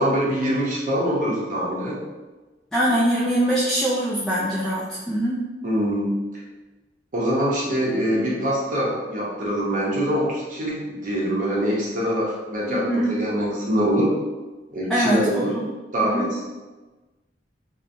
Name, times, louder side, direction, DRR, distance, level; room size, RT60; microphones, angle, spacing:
voice 1, 0.0-2.0 5.6-6.1 7.1-14.1 14.7-15.5 15.9-16.4, equal, 50° right, -6 dB, 0.8 m, -24 dB
voice 2, 2.7-5.4 12.7-13.1 14.9-15.6 16.0-16.3, right 1 dB, ahead, -8 dB, 0.3 m, -23 dB
3.0 x 2.1 x 2.5 m, 1.2 s
head